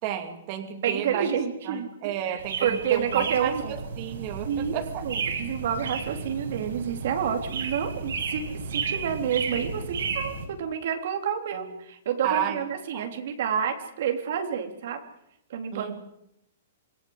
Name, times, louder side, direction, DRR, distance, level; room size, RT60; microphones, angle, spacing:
voice 1, 0.0-1.3 1.7-5.0 12.2-12.6 12.9-13.1 15.7-15.9, right 10 dB, 30° right, 5 dB, 2.7 m, -32 dB
voice 2, 0.8-3.7 4.5-15.0 15.5-15.9, right 8 dB, 50° right, 5 dB, 3.6 m, -29 dB
sound 1, 2.4-10.5, right 5 dB, 75° right, 6.2 m, -33 dB
26.5 x 20.0 x 8.0 m, 0.77 s
hypercardioid pair, 175°, 0 cm